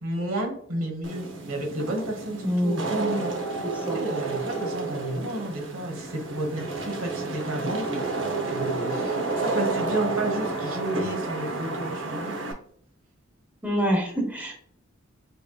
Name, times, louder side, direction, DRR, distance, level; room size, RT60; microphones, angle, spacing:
voice 1, 0.0-3.4 3.9-12.3, right 1 dB, 90° right, 2 dB, 1.2 m, -32 dB
Wind / Rain, 1.0-12.5, right 3 dB, 65° right, 0.8 m, -31 dB
voice 2, 2.4-2.9 3.9-4.0 13.6-14.6, equal, 5° right, 1 dB, 0.8 m, -25 dB
5.2 x 3.1 x 2.3 m, 0.64 s
head